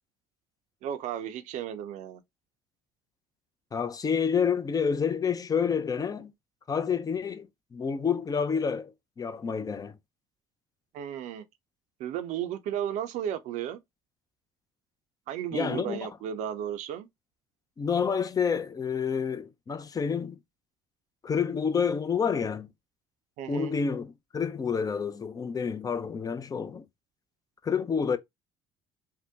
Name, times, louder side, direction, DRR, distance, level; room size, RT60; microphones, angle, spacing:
voice 1, 0.8-2.2 10.9-11.4 12.0-13.8 15.3-17.1 23.4-23.7, right 10 dB, 65° right, 0.5 m, -34 dB
voice 2, 3.7-6.3 6.7-9.9 15.5-16.1 17.8-20.4 21.2-22.7 23.5-26.8 27.6-28.2, left 6 dB, 30° left, 0.5 m, -29 dB
2.8 x 2.1 x 3.3 m
hypercardioid pair, 65°, 13 cm